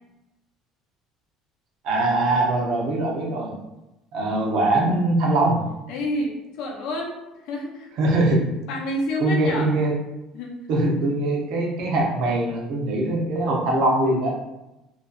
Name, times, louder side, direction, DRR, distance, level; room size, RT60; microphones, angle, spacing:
voice 1, 1.8-3.5 4.1-5.6 8.0-8.5 9.2-9.9 10.7-14.4, right 2 dB, 60° right, -1 dB, 0.6 m, -22 dB
voice 2, 5.9-7.2 7.4-7.9 8.7-9.7 10.3-10.5, left 1 dB, 65° left, 0 dB, 0.6 m, -29 dB
2.5 x 2.3 x 2.3 m, 0.97 s
cardioid pair, 160°, 0 cm